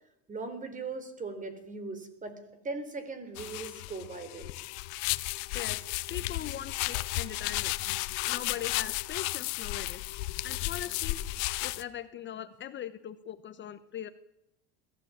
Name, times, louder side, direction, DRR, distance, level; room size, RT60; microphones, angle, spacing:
voice 1, 0.3-2.4 2.6-4.5, right 3 dB, 20° right, 10 dB, 4.0 m, -39 dB
sound 1, 3.4-11.8, left 20 dB, 70° left, 1.0 m, -33 dB
voice 2, 5.5-7.7 8.2-10.1 10.4-11.2 11.6-14.1, left 10 dB, 35° left, 12 dB, 1.1 m, -40 dB
21.5 x 15.5 x 8.7 m, 0.82 s
supercardioid pair, 115°, 35 cm